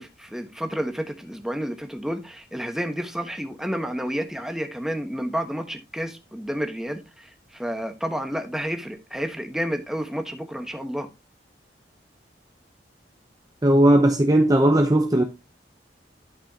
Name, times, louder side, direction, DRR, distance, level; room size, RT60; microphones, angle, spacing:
voice 1, 0.0-11.1, equal, 5° right, 1.3 m, -30 dB
voice 2, 13.6-15.2, right 1 dB, 20° right, 0.8 m, -17 dB
11.5 x 6.1 x 2.9 m
head